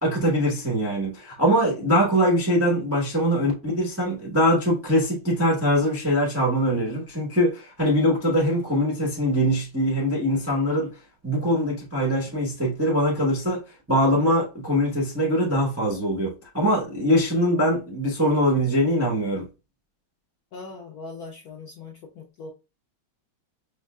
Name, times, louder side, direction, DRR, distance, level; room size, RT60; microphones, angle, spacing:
voice 1, 0.0-10.9 11.2-13.6 13.9-19.5, equal, 15° right, 0.4 m, -22 dB
voice 2, 20.5-22.5, left 3 dB, 70° left, 0.9 m, -40 dB
5.3 x 2.6 x 2.2 m
omnidirectional pair, 2.2 m